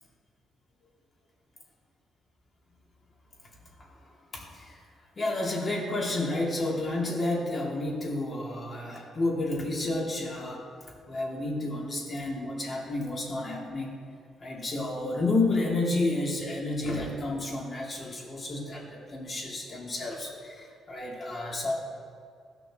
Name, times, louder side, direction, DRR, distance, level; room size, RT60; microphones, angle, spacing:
voice 1, 5.2-10.6 11.1-13.9 14.4-21.8, left 2 dB, 35° left, -3 dB, 2.8 m, -30 dB
16.5 x 5.9 x 3.7 m, 2.3 s
cardioid pair, 90°, 0 cm